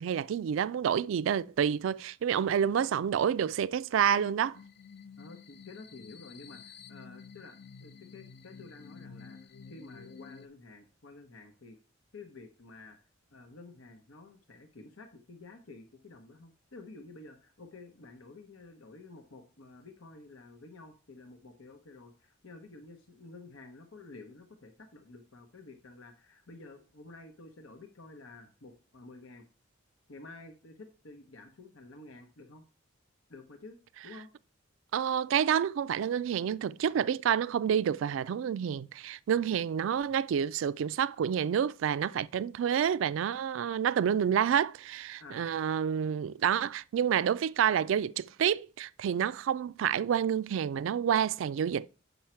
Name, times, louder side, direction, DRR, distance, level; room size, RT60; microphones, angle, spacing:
voice 1, 0.0-4.6 34.9-51.9, right 8 dB, 70° right, 0.3 m, -28 dB
sound 1, 4.5-10.5, left 5 dB, 55° left, 0.5 m, -50 dB
voice 2, 5.2-11.8 12.1-13.0 13.3-29.4 30.1-32.7 33.3-33.8 34.0-34.3 45.2-45.5, left 3 dB, 90° left, 1.0 m, -51 dB
7.2 x 5.4 x 4.4 m
head